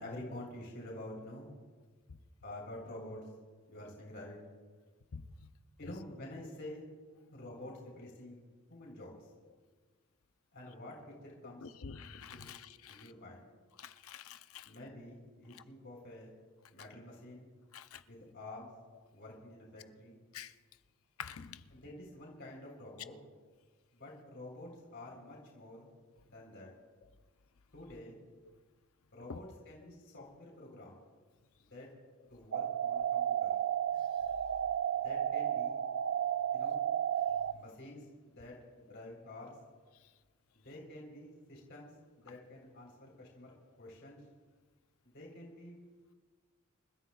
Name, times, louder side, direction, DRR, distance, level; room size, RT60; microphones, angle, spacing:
voice 1, 0.0-1.5 2.4-3.2 3.7-4.4 5.8-6.8 7.3-8.4 8.7-9.3 10.5-11.0 11.2-11.7 12.3-12.5 12.9-13.4 14.6-16.3 16.7-17.5 18.1-18.7 19.1-20.2 21.7-23.2 23.9-25.9 26.3-26.7 27.7-28.2 29.1-31.0 31.6-31.9 32.3-33.5 34.9-35.8 36.5-36.8 37.5-39.6 40.5-43.5 43.8-44.2 45.0-45.8, left 1 dB, 55° left, 3.8 m, -49 dB
voice 2, 11.6-13.0 13.8-14.7 17.7-18.0 20.3-20.5 21.2-21.6 29.3-29.4, left 6 dB, 75° left, 0.6 m, -47 dB
sound 1, 32.5-37.5, right 9 dB, 55° right, 0.4 m, -33 dB
29.5 x 14.0 x 2.3 m
head